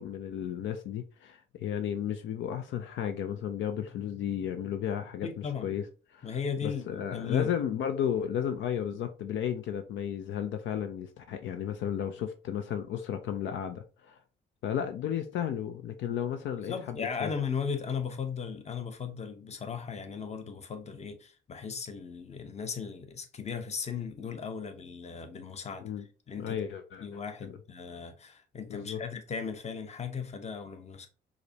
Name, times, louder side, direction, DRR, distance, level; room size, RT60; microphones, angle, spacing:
voice 1, 0.0-5.8 6.1-6.3 6.6-14.2 14.6-17.3 25.8-26.0 26.4-27.1 28.7-29.0, left 9 dB, 75° left, 0.5 m, -33 dB
voice 2, 5.2-5.8 6.2-7.5 16.6-26.6 27.0-31.1, left 6 dB, 35° left, 0.7 m, -37 dB
4.8 x 2.1 x 2.7 m
cardioid pair, 90°, 20 cm